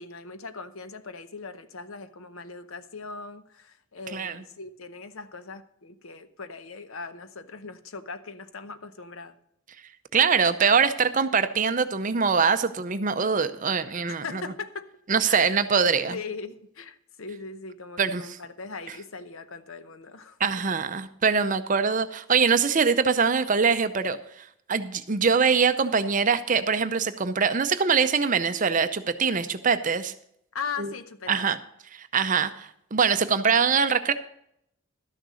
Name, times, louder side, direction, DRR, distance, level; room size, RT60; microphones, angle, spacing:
voice 1, 0.0-9.4 14.1-14.9 15.2-15.6 16.1-20.4 30.5-31.5, left 4 dB, 70° left, 0.8 m, -39 dB
voice 2, 4.1-4.4 10.1-14.4 15.1-16.2 18.0-18.4 20.4-30.1 30.8-30.9 31.3-31.6 31.9-34.1, right 5 dB, 35° right, 0.6 m, -23 dB
12.5 x 6.5 x 6.3 m
head